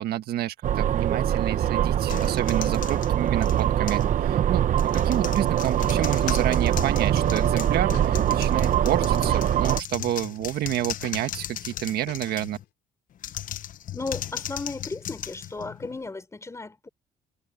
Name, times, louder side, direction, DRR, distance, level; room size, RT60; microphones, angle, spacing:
voice 1, 0.0-4.6 4.9-12.6, right 13 dB, 70° right, 1.6 m, -29 dB
sound 1, 0.6-9.8, right 10 dB, 50° right, 0.9 m, -23 dB
sound 2, 2.1-4.1 4.7-12.6 13.2-16.1, left 11 dB, 55° left, 0.9 m, -37 dB
sound 3, 7.2-8.3 8.6-9.7 10.0-10.4 10.7-12.5, left 14 dB, 75° left, 3.8 m, -45 dB
voice 2, 13.9-16.9, left 3 dB, 15° left, 4.9 m, -35 dB
cardioid pair, 110°, 17 cm